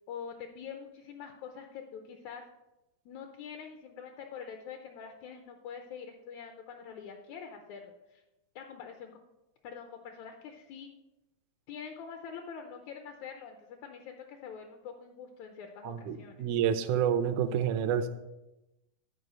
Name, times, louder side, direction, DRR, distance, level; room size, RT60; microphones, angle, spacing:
voice 1, 0.1-2.4 3.1-8.2 8.6-9.1 9.6-10.9 11.7-16.5, left 7 dB, 75° left, 5 dB, 1.9 m, -45 dB
voice 2, 15.8-18.1, right 8 dB, 80° right, 8 dB, 2.0 m, -29 dB
11.0 x 4.7 x 6.6 m, 0.97 s
omnidirectional pair, 3.7 m